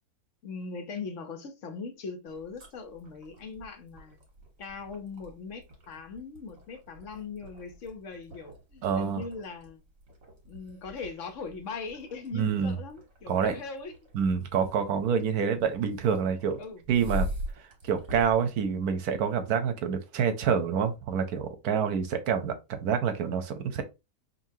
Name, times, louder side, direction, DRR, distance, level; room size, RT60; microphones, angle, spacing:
voice 1, 0.4-4.2 4.6-9.8 10.4-13.9 16.6-16.8, left 4 dB, 60° left, 1.1 m, -40 dB
sound 1, 2.3-19.5, equal, 60° right, 1.9 m, -43 dB
voice 2, 8.8-9.2 12.3-12.8 13.3-13.5 14.1-16.6 16.9-17.3 17.8-23.8, right 7 dB, 80° right, 1.2 m, -27 dB
5.3 x 2.8 x 2.7 m
omnidirectional pair, 1.6 m